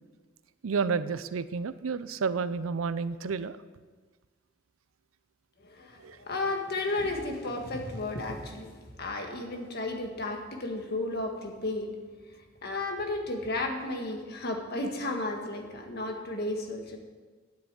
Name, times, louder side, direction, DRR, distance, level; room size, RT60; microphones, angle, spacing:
voice 1, 0.6-3.6 6.0-6.2, right 5 dB, 85° right, 14 dB, 0.5 m, -30 dB
voice 2, 5.6-8.7 9.0-11.9 12.6-17.0, left 2 dB, 50° left, 3 dB, 1.7 m, -33 dB
9.7 x 7.8 x 8.9 m, 1.4 s
head